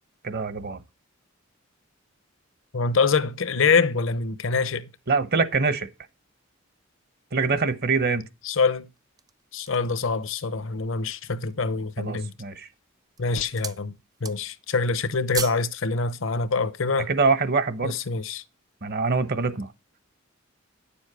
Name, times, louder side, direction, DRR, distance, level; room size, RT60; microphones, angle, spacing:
voice 1, 0.2-0.8 5.1-5.9 7.3-8.2 12.0-12.7 17.1-18.0 18.8-19.7, right 4 dB, 55° right, 1.0 m, -24 dB
voice 2, 2.7-4.9 8.4-8.9 9.5-12.3 13.2-13.9 14.2-17.1 17.8-18.4, left 4 dB, 70° left, 0.9 m, -25 dB
sound 1, 9.0-10.0 10.6-10.7 11.1-11.7 12.4-12.7 13.1-13.9 14.1-14.7 14.9-15.7 16.0-16.2, right 6 dB, 20° right, 0.4 m, -36 dB
10.0 x 7.2 x 4.9 m
head